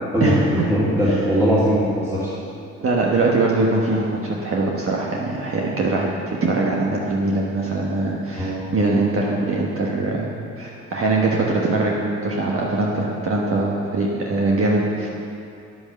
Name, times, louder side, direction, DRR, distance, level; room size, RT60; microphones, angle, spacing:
voice 1, 0.1-2.3 8.4-8.6 12.9-13.0 13.5-13.6, equal, 10° right, -9 dB, 2.3 m, -20 dB
voice 2, 2.8-6.1 6.4-10.3 10.6-15.1, right 2 dB, 45° right, -3 dB, 1.3 m, -22 dB
9.0 x 8.6 x 6.7 m, 2.6 s
cardioid pair, 90°, 30 cm